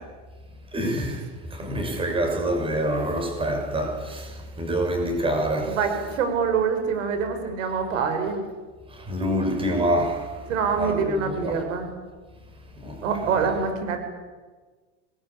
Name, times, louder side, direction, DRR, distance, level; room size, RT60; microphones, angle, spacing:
voice 1, 0.7-1.2 1.5-5.8 8.9-10.3 10.7-11.5 12.8-13.0 13.3-13.5, right 1 dB, 15° right, 3 dB, 6.6 m, -26 dB
voice 2, 5.8-8.4 10.5-11.9 13.0-14.0, right 6 dB, 90° right, 7 dB, 5.9 m, -25 dB
26.0 x 21.0 x 8.7 m, 1.4 s
supercardioid pair, 150°, 37 cm